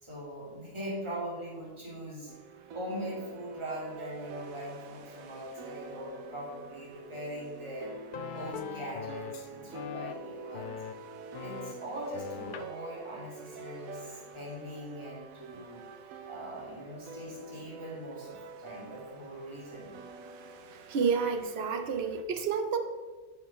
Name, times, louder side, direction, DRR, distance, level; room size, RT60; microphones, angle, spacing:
voice 1, 0.0-2.3 2.7-8.0 8.3-10.8 11.4-15.8 16.3-20.0, right 1 dB, 20° right, -5 dB, 2.5 m, -41 dB
sound 1, 2.3-22.2, right 3 dB, 85° right, 1.2 m, -47 dB
sound 2, 8.1-9.5 9.7-10.1 10.5-10.9 11.3-11.7 12.1-12.7, left 7 dB, 85° left, 0.4 m, -41 dB
voice 2, 20.9-22.8, right 5 dB, 55° right, 6 dB, 0.9 m, -29 dB
6.4 x 5.8 x 5.8 m, 1.3 s
omnidirectional pair, 1.4 m